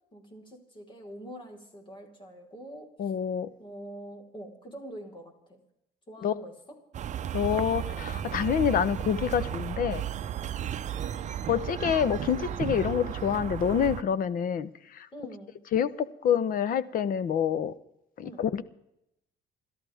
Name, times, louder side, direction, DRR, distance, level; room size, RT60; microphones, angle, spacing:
voice 1, 0.1-2.9 3.6-5.6 6.1-6.5 15.1-15.6 18.2-18.4, right 1 dB, 30° left, 2 dB, 4.4 m, -45 dB
voice 2, 3.0-3.5 6.2-6.3 7.3-10.0 11.5-15.1 15.7-17.7 18.2-18.6, left 8 dB, 55° left, 16 dB, 1.0 m, -27 dB
sound 1, 6.9-14.0, right 10 dB, 45° right, 0.7 m, -34 dB
29.5 x 13.0 x 3.6 m, 0.84 s
cardioid pair, 110°, 17 cm